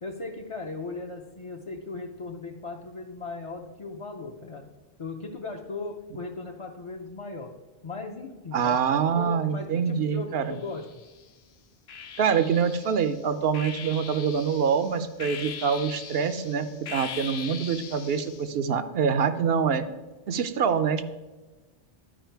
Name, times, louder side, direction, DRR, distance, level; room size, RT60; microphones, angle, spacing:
voice 1, 0.0-4.6 5.0-7.5 7.8-8.8 9.1-10.8, left 3 dB, 35° left, -1 dB, 0.5 m, -37 dB
voice 2, 8.5-10.6 12.2-19.8 20.3-21.0, right 6 dB, 65° right, 10 dB, 0.8 m, -25 dB
sound 1, 10.5-11.2 11.9-18.5, left 7 dB, 70° left, 0.9 m, -41 dB
11.5 x 5.0 x 4.5 m, 1.2 s
omnidirectional pair, 1.1 m